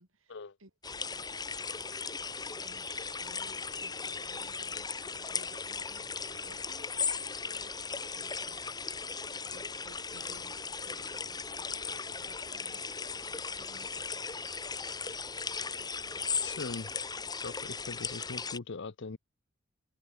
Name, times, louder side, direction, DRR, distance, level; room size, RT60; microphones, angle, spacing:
voice 1, 0.0-1.6 2.6-8.7 9.3-11.3 11.5-12.8 13.3-13.9, right 2 dB, 65° right, 4.9 m, -59 dB
sound 1, 0.8-18.6, left 5 dB, 20° left, 1.8 m, -37 dB
voice 2, 16.4-16.9 17.4-19.2, left 4 dB, 55° left, 0.7 m, -41 dB
head